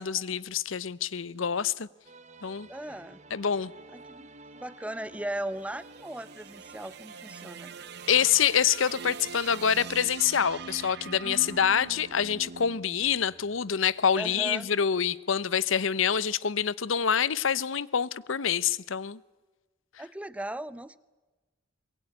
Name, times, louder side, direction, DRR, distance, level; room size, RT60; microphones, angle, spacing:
voice 1, 0.0-1.9 2.4-2.7 3.3-3.7 8.1-19.2, left 7 dB, 80° left, 0.8 m, -26 dB
sound 1, 2.0-12.6, right 3 dB, 35° right, 1.3 m, -52 dB
voice 2, 2.7-3.2 3.9-7.7 11.2-12.0 14.1-14.7 20.0-21.0, right 1 dB, 5° right, 0.7 m, -38 dB
sound 2, 5.5-13.8, right 6 dB, 55° right, 0.9 m, -44 dB
23.5 x 22.0 x 9.8 m
head